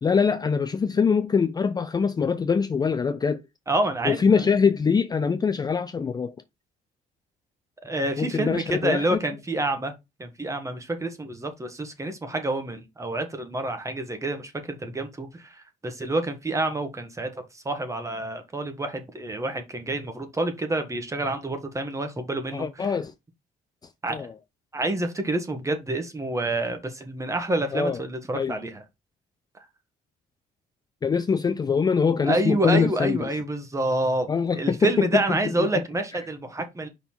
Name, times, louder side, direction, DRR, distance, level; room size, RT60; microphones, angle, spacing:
voice 1, 0.0-3.4 4.0-6.3 8.2-9.2 22.5-23.1 24.1-24.3 27.7-28.0 28.3-28.6 31.0-33.3 34.3-35.4, left 5 dB, 25° left, 0.5 m, -23 dB
voice 2, 3.7-4.5 7.8-9.9 10.2-22.9 24.0-24.3 24.7-28.8 29.5-29.7 32.2-34.3 34.5-36.9, right 2 dB, 20° right, 1.4 m, -28 dB
5.4 x 4.0 x 4.4 m
cardioid pair, 110°, 17 cm